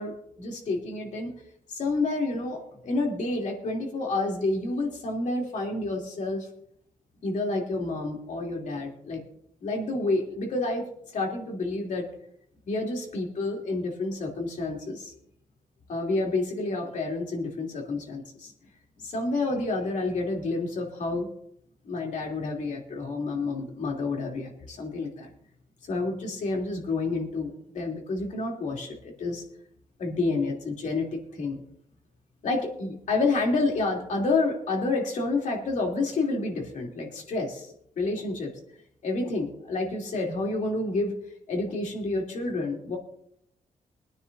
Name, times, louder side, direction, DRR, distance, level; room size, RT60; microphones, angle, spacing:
voice 1, 0.0-1.3 1.7-6.5 7.2-9.2 9.6-10.9 11.1-12.1 12.7-15.1 15.9-18.5 19.0-21.3 21.8-25.3 25.8-29.4 30.0-31.6 32.4-38.5 39.0-41.1 41.5-43.0, left 3 dB, 65° left, 0 dB, 2.9 m, -29 dB
25.0 x 9.6 x 2.6 m, 0.71 s
wide cardioid pair, 155°, 14 cm